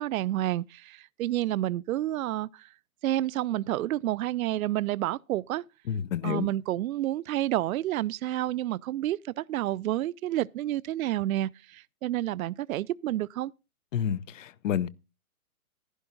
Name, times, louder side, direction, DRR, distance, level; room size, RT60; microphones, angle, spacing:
voice 1, 0.0-2.7 3.0-5.6 6.2-13.5, right 14 dB, 70° right, 0.5 m, -29 dB
voice 2, 5.9-6.5 13.9-14.9, left 9 dB, 60° left, 0.8 m, -29 dB
11.0 x 11.0 x 3.8 m
hypercardioid pair, 145°, 44 cm